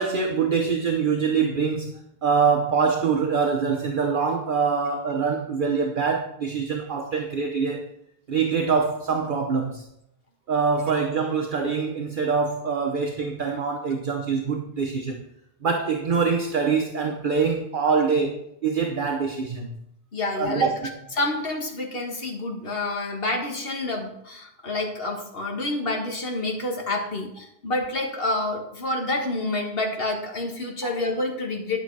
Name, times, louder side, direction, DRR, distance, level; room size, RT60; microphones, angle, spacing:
voice 1, 0.0-1.9 2.2-7.9 8.3-9.8 10.5-15.2 15.6-19.8 20.3-20.7 30.8-30.9, right 5 dB, 50° right, 3 dB, 1.0 m, -24 dB
voice 2, 20.1-20.7 21.2-31.8, left 2 dB, 60° left, 1 dB, 1.8 m, -28 dB
11.0 x 6.7 x 4.7 m, 0.77 s
omnidirectional pair, 1.1 m